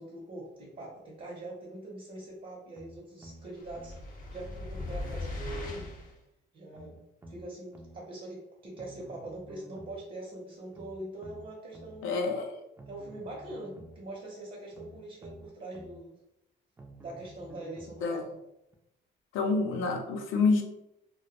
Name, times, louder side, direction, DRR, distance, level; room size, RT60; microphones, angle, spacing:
voice 1, 0.0-4.0 4.3-5.9 6.5-7.0 7.3-12.1 12.9-16.2 17.0-18.2, right 1 dB, 45° right, -3 dB, 0.7 m, -43 dB
sound 1, 2.8-4.0 4.8-6.0 6.7-8.0 8.8-10.0 10.7-12.0 12.8-14.0 14.7-16.0 16.8-18.0 18.7-18.8, right 1 dB, 15° right, 0.3 m, -50 dB
sound 2, 3.5-6.2, left 2 dB, 45° left, 0.6 m, -39 dB
voice 2, 12.0-12.6 18.0-18.2 19.3-20.6, left 4 dB, 85° left, 4 dB, 0.5 m, -27 dB
2.1 x 2.1 x 2.8 m, 0.85 s
cardioid pair, 90°, 20 cm